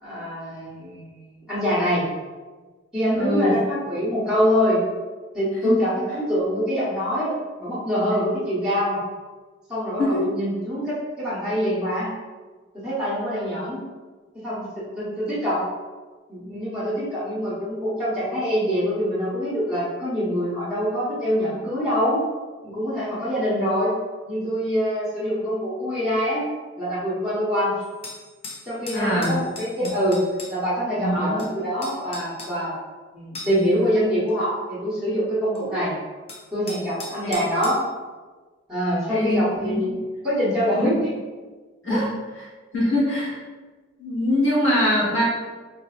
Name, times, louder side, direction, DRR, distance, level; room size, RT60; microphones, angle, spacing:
voice 1, 0.0-2.0 2.9-4.8 5.3-9.0 9.7-12.1 12.8-13.8 14.3-15.6 16.3-22.2 22.6-23.9 24.3-26.5 26.8-27.7 28.6-30.2 30.5-32.8 33.1-35.9 36.5-37.8 38.7-39.9 40.2-40.9 41.9-42.0 43.0-43.1, equal, 5° right, -10 dB, 0.9 m, -24 dB
voice 2, 3.1-3.5 5.6-5.8 10.0-10.3 28.9-29.4 29.8-29.9 31.0-31.4 37.2-37.3 39.1-39.9 40.7-41.0 41.8-42.1 42.7-43.4 44.0-45.2, left 1 dB, 75° left, -6 dB, 1.3 m, -23 dB
sound 1, 27.8-30.5 31.4-31.5 31.8-32.5 33.4-33.7 34.3-34.4 35.6-35.7 36.3-37.8, left 2 dB, 30° left, 0.4 m, -38 dB
4.0 x 2.6 x 2.4 m, 1.3 s
head